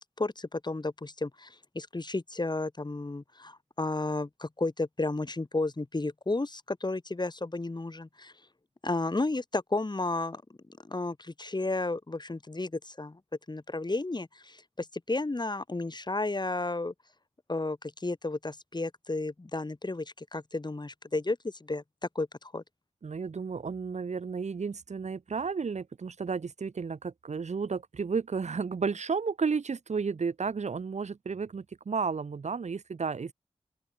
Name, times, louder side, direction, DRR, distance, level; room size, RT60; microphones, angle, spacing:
voice 1, 0.0-8.3 8.8-10.4 10.8-13.2 13.5-16.9 17.5-21.8 22.1-22.6, left 2 dB, 40° left, 4.9 m, -33 dB
voice 2, 23.0-33.3, right 5 dB, 85° right, 7.2 m, -32 dB
open air
cardioid pair, 50°, 12 cm